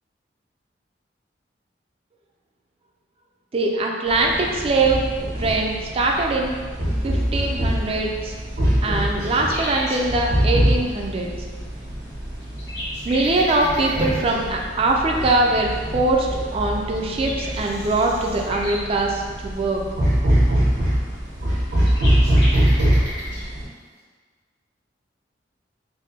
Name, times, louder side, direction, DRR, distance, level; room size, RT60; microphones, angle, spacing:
voice 1, 3.5-5.1 5.4-6.6 7.0-8.3 8.8-11.3 13.1-19.8, right 2 dB, 35° right, 0 dB, 0.3 m, -22 dB
sound 1, 4.1-23.6, equal, 80° right, 1.2 m, -23 dB
sound 2, 7.9-8.0 8.3-8.4 8.6-10.0 11.9-12.0 12.4-14.4 16.5-16.6 17.0-18.8 21.3-21.4 21.6-23.4, equal, 70° left, 1.2 m, -34 dB
3.4 x 2.1 x 4.0 m, 1.5 s
head